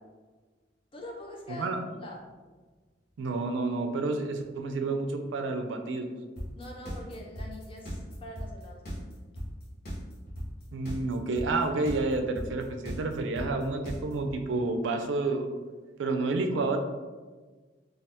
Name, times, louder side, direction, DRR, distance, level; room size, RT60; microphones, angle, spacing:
voice 1, 0.9-1.7 2.0-2.2 6.6-9.1, left 1 dB, 30° left, 0 dB, 0.5 m, -44 dB
voice 2, 1.5-1.8 3.2-6.1 10.7-15.5 16.0-16.8, right 3 dB, 90° right, 6 dB, 0.4 m, -29 dB
sound 1, 6.4-14.3, equal, 60° left, 0.9 m, -37 dB
2.8 x 2.4 x 3.3 m, 1.3 s
head